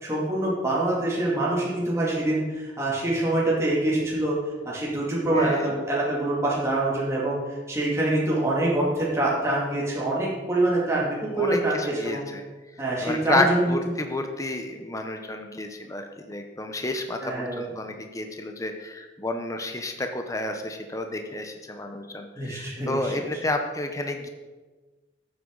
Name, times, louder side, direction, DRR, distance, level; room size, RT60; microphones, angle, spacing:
voice 1, 0.0-4.4 4.7-12.3 12.8-13.6 17.2-17.7 22.4-23.1, right 1 dB, 15° right, -6 dB, 2.4 m, -25 dB
voice 2, 5.3-5.7 11.4-12.4 13.0-24.3, left 2 dB, 15° left, 5 dB, 0.8 m, -30 dB
13.5 x 8.1 x 3.9 m, 1.3 s
head